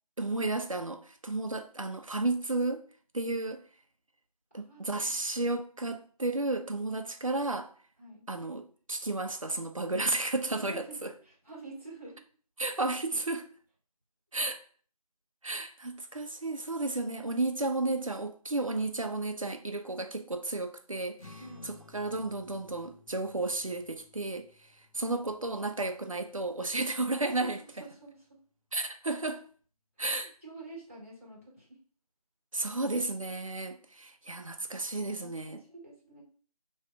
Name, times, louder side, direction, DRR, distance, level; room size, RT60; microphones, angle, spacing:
voice 1, 0.2-2.8 3.1-3.6 4.5-7.7 8.3-11.1 12.6-13.5 14.3-14.6 15.4-24.5 24.9-27.6 28.7-29.4 30.0-30.3 32.5-35.6, right 2 dB, 55° right, 0.7 m, -33 dB
voice 2, 4.5-5.2 8.0-8.3 10.5-12.2 21.4-21.7 27.4-28.4 30.0-30.1 30.4-31.8 35.2-36.2, right 2 dB, 20° right, 1.2 m, -48 dB
sound 1, 21.2-27.8, left 3 dB, 60° left, 1.5 m, -57 dB
3.4 x 3.3 x 4.8 m
figure-of-eight pair, 175°, 20 cm